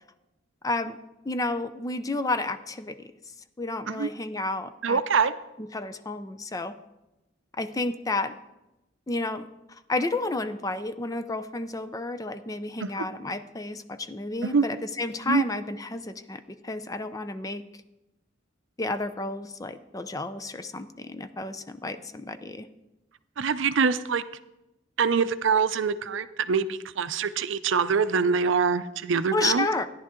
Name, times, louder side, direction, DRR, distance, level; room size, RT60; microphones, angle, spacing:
voice 1, 0.6-1.0 1.3-3.1 3.6-5.0 5.6-6.7 7.6-8.4 9.1-9.5 9.9-17.6 18.8-22.7 29.3-29.9, left 2 dB, 15° left, 11 dB, 0.4 m, -31 dB
voice 2, 4.8-5.3 12.8-13.0 14.4-14.7 15.3-15.4 23.4-24.2 25.0-29.7, right 5 dB, 65° right, 13 dB, 0.5 m, -24 dB
14.0 x 10.5 x 3.7 m, 0.94 s
head